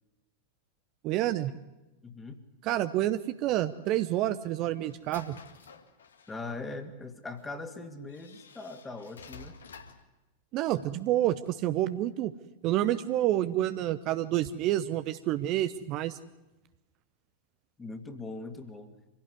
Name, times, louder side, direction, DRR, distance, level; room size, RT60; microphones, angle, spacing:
voice 1, 1.0-1.5 2.6-5.4 10.5-12.3 12.6-16.2, right 13 dB, 40° right, 11 dB, 0.9 m, -28 dB
voice 2, 2.0-2.4 6.3-9.6 17.8-18.9, left 3 dB, 15° left, 7 dB, 2.4 m, -41 dB
sound 1, 4.1-6.5 7.4-7.5 8.1-10.1, left 5 dB, 70° left, 1.9 m, -51 dB
25.5 x 16.5 x 9.8 m, 1.1 s
figure-of-eight pair, 90°, 0 cm